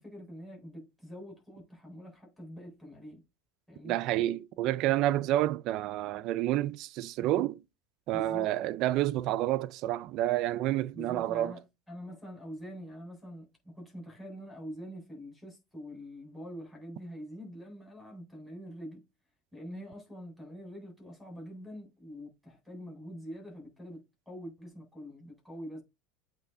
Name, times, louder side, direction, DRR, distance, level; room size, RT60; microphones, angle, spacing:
voice 1, 0.0-3.2 3.7-4.0 8.1-8.5 10.9-19.0 19.5-25.8, equal, ahead, 3.9 m, -45 dB
voice 2, 3.8-7.6 8.1-11.5, right 14 dB, 50° right, 0.5 m, -29 dB
8.2 x 3.4 x 3.5 m
supercardioid pair, 145°, 0 cm